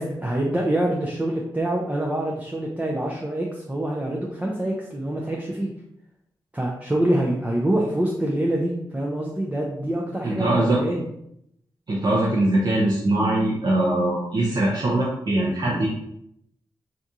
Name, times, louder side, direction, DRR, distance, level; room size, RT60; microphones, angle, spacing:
voice 1, 0.0-5.7 6.5-11.0 15.7-15.8, right 1 dB, 15° right, -3 dB, 0.6 m, -25 dB
voice 2, 10.2-10.8 11.9-15.9, right 1 dB, 55° right, -5 dB, 0.7 m, -22 dB
2.9 x 2.5 x 3.5 m, 0.77 s
cardioid pair, 65°, 9 cm